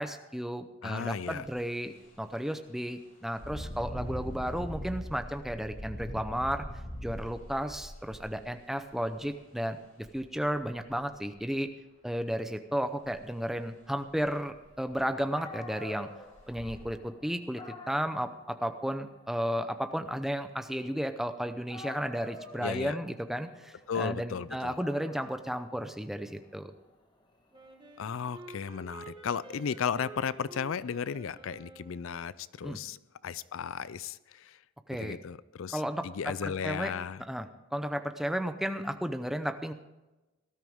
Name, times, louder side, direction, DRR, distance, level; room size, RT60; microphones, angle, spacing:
voice 1, 0.0-6.7 7.0-9.8 10.1-11.7 12.0-16.1 16.5-26.7 32.6-32.8 34.9-35.2 35.7-36.1 36.4-36.9 37.3-37.5 37.7-39.7, equal, ahead, 8 dB, 0.6 m, -33 dB
voice 2, 0.8-1.4 22.6-23.0 23.9-24.8 28.0-34.6 34.9-37.2, left 6 dB, 70° left, 18 dB, 0.4 m, -35 dB
Engine, 1.3-1.5 2.0-2.1 3.3-9.1 10.0-10.1 10.5-11.3 13.1-13.2 13.6-13.7 14.1-14.2 14.5-15.0 15.6-15.7 16.3-16.8, equal, 35° left, 5.2 m, -41 dB
Dog, 15.0-15.1 15.3-21.3 21.7-28.5, left 3 dB, 20° left, 1.4 m, -50 dB
Wind instrument woodwind instrument, 27.5-32.3, right 2 dB, 20° right, 1.4 m, -50 dB
19.0 x 12.5 x 3.6 m, 1.0 s
head